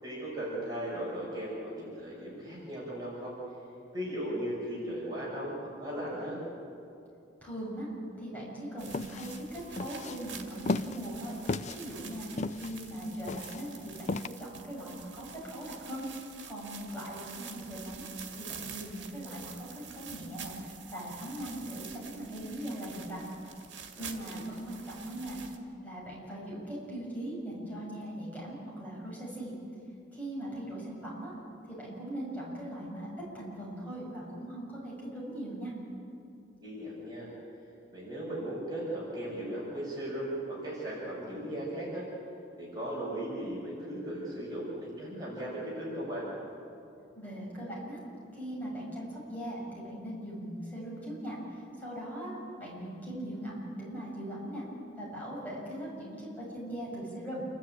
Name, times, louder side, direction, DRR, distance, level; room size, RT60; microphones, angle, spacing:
voice 1, 0.0-3.3 3.9-6.4 23.9-24.4 36.6-37.3 37.9-42.0 42.6-46.3, right 1 dB, 25° right, -5 dB, 5.8 m, -37 dB
voice 2, 7.4-7.9 8.2-11.4 11.7-12.3 12.6-18.1 18.4-20.5 20.9-23.2 24.0-25.4 25.8-29.5 30.1-31.3 31.7-33.1 33.3-35.7 47.1-48.0 48.3-54.6 55.0-57.5, right 1 dB, 10° left, -6 dB, 7.2 m, -40 dB
sound 1, 8.8-25.6, right 7 dB, 80° right, 2.0 m, -47 dB
sound 2, 8.9-14.3, left 3 dB, 40° left, 0.4 m, -35 dB
28.5 x 13.0 x 8.9 m, 2.6 s
head